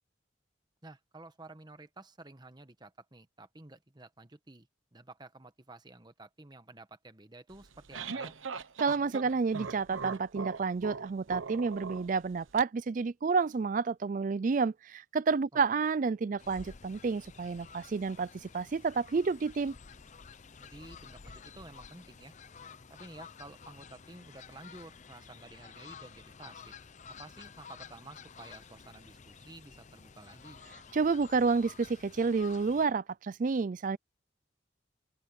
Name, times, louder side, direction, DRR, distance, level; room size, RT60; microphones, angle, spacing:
voice 1, 0.8-8.4 15.5-15.7 20.6-22.3 22.9-26.8 27.1-30.6, right 2 dB, 20° right, 1.2 m, -52 dB
sound 1, 7.5-12.6, right 5 dB, 90° right, 1.1 m, -41 dB
voice 2, 8.8-19.8 30.9-34.0, right 4 dB, 40° right, 0.4 m, -30 dB
Fowl, 16.4-32.9, left 6 dB, 40° left, 0.6 m, -51 dB
open air
head